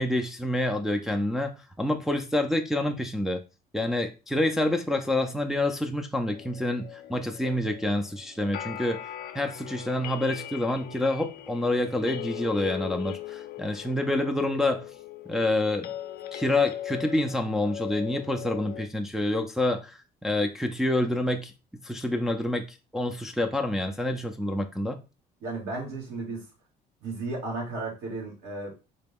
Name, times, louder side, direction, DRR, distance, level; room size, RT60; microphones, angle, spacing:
voice 1, 0.0-3.4 3.7-9.0 9.3-14.9 15.3-15.9 16.3-21.5 21.8-25.0, left 1 dB, ahead, 3 dB, 0.4 m, -27 dB
sound 1, 6.3-18.9, left 12 dB, 65° left, 0.5 m, -39 dB
voice 2, 25.4-26.5 27.0-28.8, right 3 dB, 75° right, -3 dB, 2.0 m, -34 dB
3.9 x 2.2 x 3.5 m, 0.30 s
cardioid pair, 110°, 17 cm